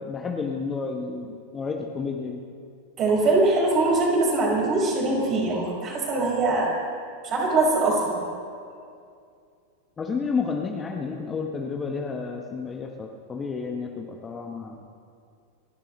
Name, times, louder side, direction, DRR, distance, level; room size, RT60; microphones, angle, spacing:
voice 1, 0.0-2.4 10.0-14.9, left 5 dB, 20° left, 2 dB, 1.2 m, -31 dB
voice 2, 3.0-6.7 7.2-8.2, right 2 dB, 30° right, -3 dB, 4.8 m, -22 dB
29.0 x 12.0 x 3.2 m, 2.3 s
figure-of-eight pair, 90°, 0 cm